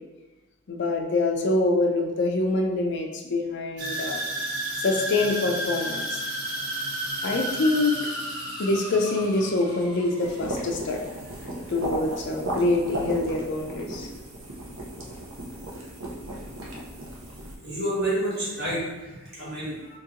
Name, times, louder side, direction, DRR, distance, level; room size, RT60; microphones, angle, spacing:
voice 1, 0.7-4.2 4.8-6.2 7.2-7.9 8.6-11.0 11.7-14.1, left 2 dB, 50° left, 1 dB, 0.4 m, -25 dB
sound 1, 3.8-12.0 12.3-12.7 13.2-13.3, right 1 dB, 90° right, 1.1 m, -33 dB
sound 2, 10.2-17.6, right 1 dB, 65° right, 0.7 m, -35 dB
voice 2, 17.6-20.0, right 1 dB, 45° right, -7 dB, 1.4 m, -29 dB
2.9 x 2.8 x 3.7 m, 1.1 s
head